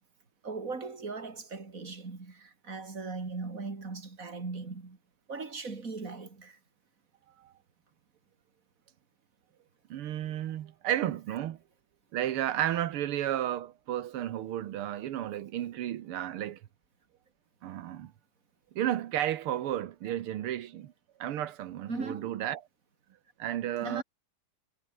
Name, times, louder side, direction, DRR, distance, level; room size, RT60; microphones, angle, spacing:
voice 1, 0.4-5.0 5.3-6.6 21.9-22.4 23.8-24.0, right 4 dB, 40° right, 3.6 m, -39 dB
voice 2, 9.9-11.6 12.1-16.6 17.6-18.1 18.8-20.9 21.2-22.6 23.4-24.0, right 12 dB, 85° right, 2.0 m, -32 dB
omnidirectional pair, 2.3 m